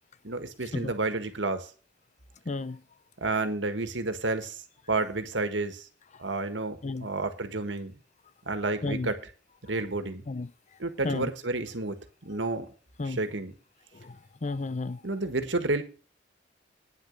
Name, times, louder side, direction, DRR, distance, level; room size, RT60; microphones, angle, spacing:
voice 1, 0.2-1.7 3.2-4.6 4.9-5.9 6.2-8.0 8.4-9.1 9.6-10.3 10.8-12.0 12.2-12.7 13.0-13.5 15.0-15.8, right 3 dB, 80° right, 1.7 m, -30 dB
voice 2, 2.5-2.8 6.8-7.1 8.8-9.1 10.3-10.5 11.0-11.3 13.0-13.2 13.9-15.0, left 3 dB, 40° left, 0.6 m, -32 dB
9.8 x 7.1 x 6.6 m
head